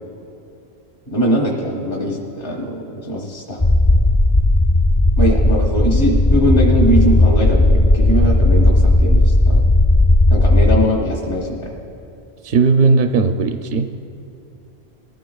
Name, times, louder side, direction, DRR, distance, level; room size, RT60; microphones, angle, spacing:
voice 1, 1.1-3.6 5.2-9.6 10.3-11.7, equal, 60° left, -2 dB, 1.6 m, -21 dB
sound 1, 3.6-10.8, left 1 dB, 30° left, 0.6 m, -14 dB
voice 2, 12.4-13.9, right 4 dB, 60° right, 6 dB, 0.7 m, -16 dB
21.5 x 14.5 x 2.3 m, 2.6 s
omnidirectional pair, 1.1 m